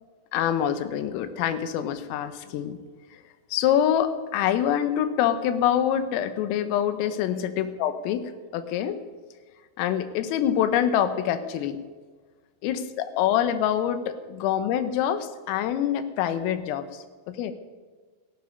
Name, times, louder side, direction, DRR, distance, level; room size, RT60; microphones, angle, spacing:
voice 1, 0.3-2.8 3.5-9.0 9.8-11.8 12.6-16.9 17.3-17.5, left 10 dB, 85° left, 11 dB, 3.6 m, -25 dB
18.0 x 14.5 x 5.3 m, 1.4 s
omnidirectional pair, 5.9 m